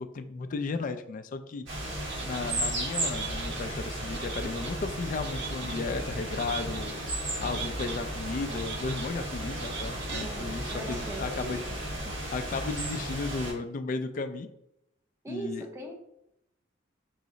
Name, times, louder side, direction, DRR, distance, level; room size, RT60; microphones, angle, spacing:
voice 1, 0.0-1.7 2.2-7.0 7.4-11.6 12.3-14.5 15.3-15.7, left 4 dB, 45° left, 9 dB, 0.3 m, -34 dB
sound 1, 1.7-13.5, right 1 dB, 90° right, 1.3 m, -34 dB
sound 2, 2.1-2.5 3.0-3.6 4.1-4.7 5.2-5.8 6.3-6.9 7.4-8.0 8.5-9.1 9.5-10.2 10.6-10.8, right 5 dB, 65° right, 0.6 m, -40 dB
voice 2, 10.2-11.7 12.0-12.1 15.2-15.9, right 2 dB, 15° right, 2 dB, 0.6 m, -40 dB
4.6 x 2.0 x 3.8 m, 0.82 s
head